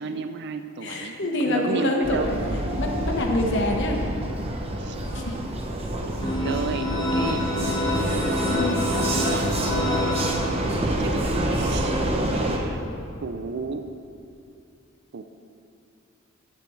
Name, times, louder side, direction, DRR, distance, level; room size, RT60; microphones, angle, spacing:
voice 1, 0.0-2.3 4.8-5.0 6.0-6.2 6.4-8.2 9.0-9.5 11.0-12.0 12.5-12.8 13.2-13.9 15.1-15.2, right 4 dB, 55° right, 8 dB, 0.4 m, -33 dB
voice 2, 0.8-2.4 2.8-4.0 5.1-5.4 8.5-8.8, left 1 dB, 60° left, 1 dB, 1.2 m, -25 dB
Vehicle, 2.0-12.6, right 1 dB, 30° right, 0.9 m, -27 dB
sound 1, 6.2-10.9, left 1 dB, 20° left, 1.0 m, -27 dB
13.5 x 8.5 x 3.2 m, 2.6 s
head